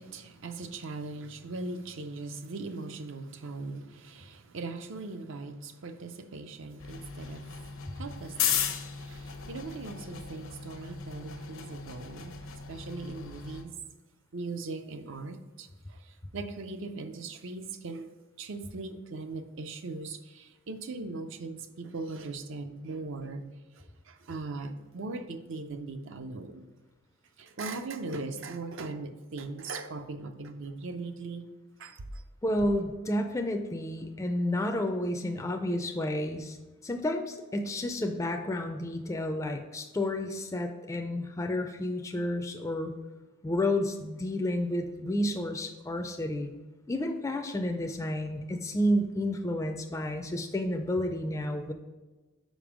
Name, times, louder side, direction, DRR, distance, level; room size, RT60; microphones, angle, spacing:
voice 1, 0.0-13.7 14.3-18.1 18.4-23.4 23.7-26.7 27.4-31.4 31.8-32.2, right 3 dB, 65° right, 0.5 m, -40 dB
sound 1, 6.8-13.6, left 8 dB, 70° left, 0.8 m, -36 dB
voice 2, 32.4-36.6 36.8-43.0 43.4-46.5 46.9-51.7, left 1 dB, 15° left, 0.4 m, -31 dB
5.2 x 5.1 x 4.9 m
head